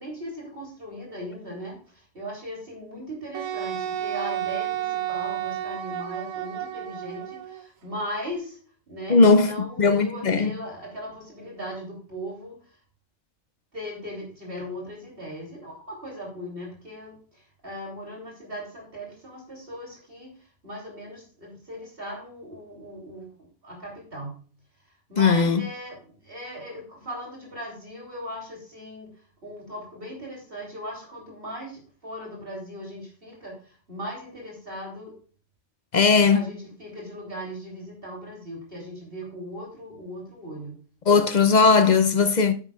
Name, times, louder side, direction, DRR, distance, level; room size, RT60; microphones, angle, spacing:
voice 1, 0.0-8.6 8.9-12.6 13.7-20.3 20.6-23.3 23.6-24.4 25.1-29.1 29.4-35.2 36.3-40.8, equal, 45° right, 3.4 m, -38 dB
Wind instrument woodwind instrument, 3.3-7.6, right 11 dB, 80° right, 1.3 m, -31 dB
voice 2, 9.1-10.5 25.2-25.6 35.9-36.4 41.1-42.5, left 4 dB, 50° left, 0.5 m, -18 dB
9.7 x 9.4 x 2.3 m
omnidirectional pair, 1.4 m